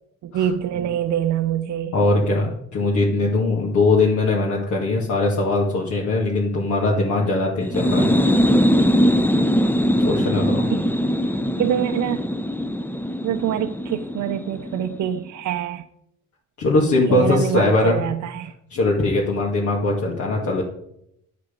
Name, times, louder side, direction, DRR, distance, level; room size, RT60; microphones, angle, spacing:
voice 1, 0.2-1.9 10.7-10.9 11.6-12.2 13.2-15.8 17.1-18.5, right 10 dB, 75° right, 0.7 m, -25 dB
voice 2, 1.9-8.1 9.5-9.6 10.1-10.6 16.6-18.0 18.7-20.6, left 2 dB, 70° left, 2.2 m, -20 dB
sound 1, 7.6-15.1, equal, 5° left, 0.7 m, -21 dB
9.7 x 7.9 x 5.2 m
cardioid pair, 90°, 30 cm